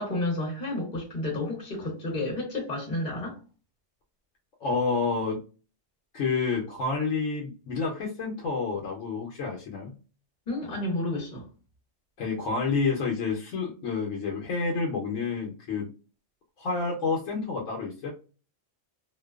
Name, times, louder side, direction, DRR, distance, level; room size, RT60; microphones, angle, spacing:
voice 1, 0.0-3.4 10.5-11.5, left 1 dB, 45° left, 0.9 m, -31 dB
voice 2, 4.6-5.4 6.1-10.0 12.2-15.9 16.6-18.1, left 4 dB, 85° left, 1.0 m, -29 dB
2.5 x 2.2 x 2.3 m
omnidirectional pair, 1.3 m